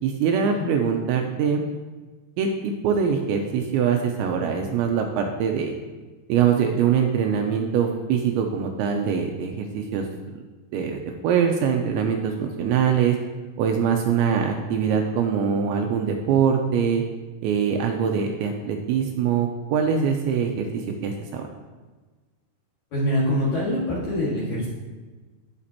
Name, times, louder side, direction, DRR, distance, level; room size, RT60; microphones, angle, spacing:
voice 1, 0.0-1.6 2.4-5.7 6.3-10.3 10.7-13.2 13.6-17.0 17.4-21.4, right 7 dB, 85° right, 3 dB, 2.8 m, -23 dB
voice 2, 22.9-24.7, left 1 dB, 50° left, -7 dB, 2.4 m, -24 dB
16.0 x 6.0 x 2.9 m, 1.3 s
omnidirectional pair, 5.6 m